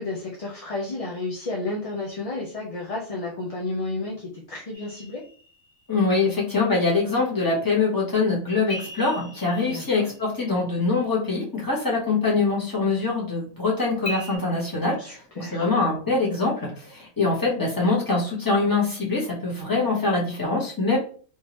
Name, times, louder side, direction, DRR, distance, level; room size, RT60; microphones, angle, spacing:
voice 1, 0.0-5.2 9.7-10.1 15.0-15.7, left 2 dB, 35° left, -3 dB, 0.7 m, -32 dB
sound 1, 4.7-6.0 8.7-10.7 14.0-14.4, equal, 80° left, 1.8 m, -38 dB
voice 2, 5.9-21.0, left 3 dB, 20° left, -5 dB, 1.3 m, -24 dB
3.6 x 2.9 x 2.9 m, 0.42 s
omnidirectional pair, 1.2 m